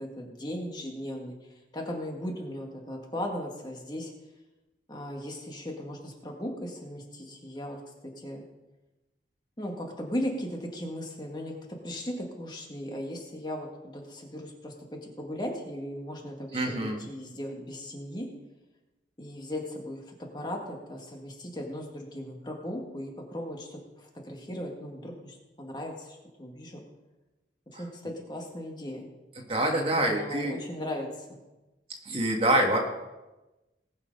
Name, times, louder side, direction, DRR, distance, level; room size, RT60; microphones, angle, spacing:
voice 1, 0.0-1.3 1.7-4.1 4.9-7.8 8.2-8.4 9.6-11.5 11.8-18.3 19.2-26.8 27.7-29.1 29.6-31.4, equal, 25° left, 1 dB, 1.7 m, -37 dB
voice 2, 16.5-17.0 27.7-27.8 29.5-30.6 32.1-32.8, right 1 dB, 30° right, 1 dB, 1.7 m, -25 dB
19.0 x 6.6 x 5.4 m, 1.1 s
head